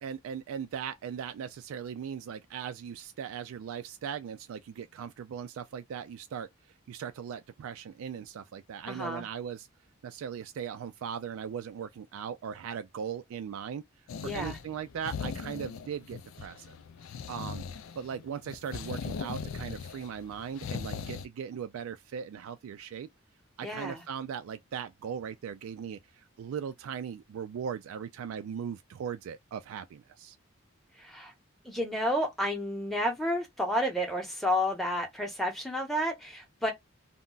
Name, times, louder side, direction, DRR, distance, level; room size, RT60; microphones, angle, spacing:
voice 1, 0.0-6.5 6.9-9.7 10.0-13.8 14.2-16.8 17.3-17.6 18.0-23.1 23.6-30.4, right 7 dB, 75° right, 0.3 m, -39 dB
voice 2, 8.9-9.2 14.2-14.6 23.6-24.0 31.0-31.3 31.6-36.7, equal, ahead, 0.8 m, -31 dB
sound 1, 14.1-21.3, left 6 dB, 75° left, 0.4 m, -39 dB
2.2 x 2.1 x 3.7 m
head